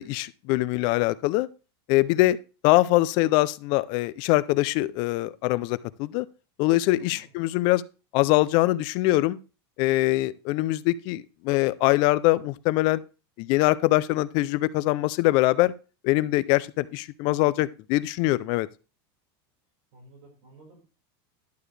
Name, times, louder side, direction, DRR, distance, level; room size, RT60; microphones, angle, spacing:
voice 1, 0.0-1.5 1.9-2.4 2.6-6.3 6.6-7.8 8.1-9.4 9.8-13.0 13.4-15.7 16.0-18.7, left 18 dB, 35° left, 0.4 m, -23 dB
voice 2, 1.9-2.2 7.0-7.3 19.9-20.8, right 2 dB, 55° right, 4.5 m, -52 dB
11.5 x 6.9 x 3.2 m
supercardioid pair, 175°, 13 cm